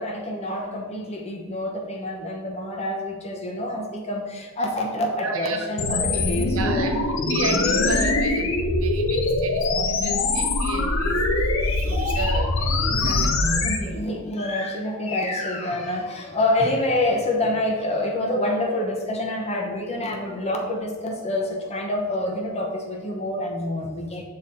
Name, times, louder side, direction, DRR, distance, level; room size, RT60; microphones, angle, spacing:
voice 1, 0.0-6.9 11.8-12.2 13.6-24.2, left 1 dB, 30° left, 1 dB, 0.8 m, -27 dB
voice 2, 5.2-5.7 5.9-14.0, right 3 dB, 65° right, 4 dB, 0.8 m, -33 dB
sound 1, 5.8-13.8, left 2 dB, 65° left, 0.6 m, -23 dB
6.8 x 3.9 x 4.2 m, 1.4 s
head